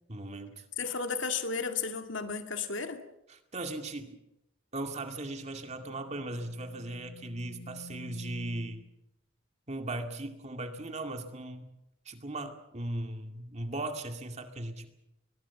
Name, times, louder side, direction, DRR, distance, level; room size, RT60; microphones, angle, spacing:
voice 1, 0.1-0.6 3.3-4.2 4.7-8.8 9.7-11.7 12.1-14.9, right 2 dB, 30° right, 6 dB, 2.2 m, -38 dB
voice 2, 0.8-3.0, left 5 dB, 60° left, 7 dB, 2.1 m, -33 dB
sound 1, 5.1-8.9, left 1 dB, 80° left, 1.8 m, -50 dB
22.5 x 21.0 x 7.2 m, 0.88 s
head